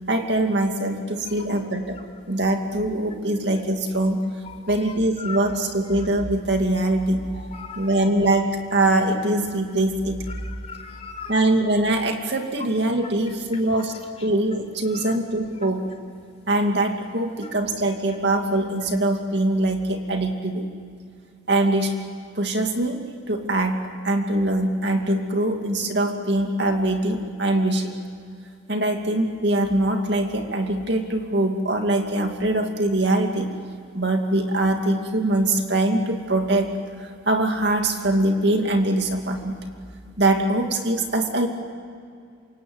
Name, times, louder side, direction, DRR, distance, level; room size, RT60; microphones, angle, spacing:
voice 1, 0.1-2.0 2.3-4.3 4.7-7.2 7.8-10.2 11.3-14.0 14.2-15.9 16.5-20.7 21.5-22.0 22.3-23.0 23.3-23.8 24.0-27.9 28.7-33.5 33.9-36.7 37.0-39.6 40.2-41.5, right 1 dB, 55° right, 4 dB, 2.5 m, -23 dB
voice 2, 1.2-1.6 4.4-5.4 7.3-7.9 10.6-11.4 14.9-15.2, left 6 dB, 30° left, 0 dB, 3.3 m, -39 dB
28.0 x 26.0 x 7.9 m, 2.3 s
head